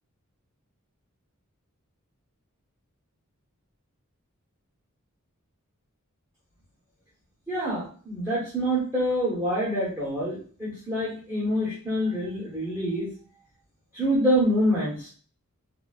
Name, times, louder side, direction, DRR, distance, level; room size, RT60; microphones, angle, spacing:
voice 1, 7.5-13.1 13.9-15.1, equal, 15° right, -10 dB, 1.2 m, -26 dB
4.2 x 2.1 x 2.4 m, 0.43 s
head